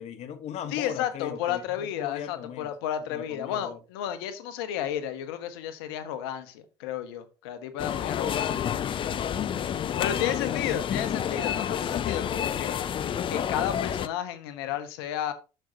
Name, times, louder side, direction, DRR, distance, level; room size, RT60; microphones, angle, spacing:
voice 1, 0.0-2.7 3.1-3.8 8.0-11.1, left 9 dB, 60° left, 1.2 m, -38 dB
voice 2, 0.7-8.5 10.0-12.8 13.3-15.3, left 10 dB, 80° left, 1.1 m, -32 dB
sound 1, 7.8-14.1, left 9 dB, 45° left, 0.6 m, -29 dB
7.9 x 6.4 x 2.8 m
hypercardioid pair, 70°, 13 cm